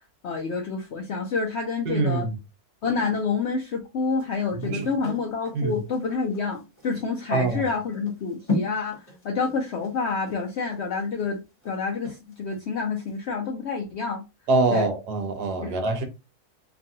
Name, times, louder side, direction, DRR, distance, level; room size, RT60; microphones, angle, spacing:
voice 1, 0.2-2.3 2.8-14.2 14.7-14.9 15.6-15.7, left 4 dB, 75° left, 0.6 m, -28 dB
voice 2, 1.9-2.4 4.6-4.9 5.5-5.8 7.3-7.6 14.5-16.0, right 3 dB, 90° right, 1.3 m, -24 dB
sound 1, 4.1-12.7 13.1-13.2, left 2 dB, 25° left, 1.0 m, -36 dB
3.0 x 2.5 x 2.6 m
omnidirectional pair, 1.7 m